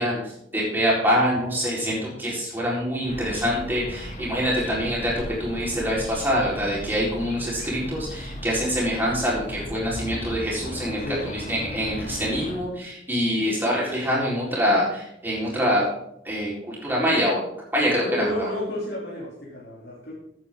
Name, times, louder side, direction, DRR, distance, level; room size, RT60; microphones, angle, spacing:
voice 1, 0.0-15.8 16.2-17.4 17.7-18.5, equal, 10° right, -6 dB, 4.3 m, -25 dB
sound 1, 3.1-12.6, equal, 40° left, 1.6 m, -36 dB
voice 2, 15.4-15.7 18.0-20.1, left 1 dB, 60° left, -6 dB, 3.2 m, -32 dB
14.5 x 8.8 x 3.8 m, 0.75 s
head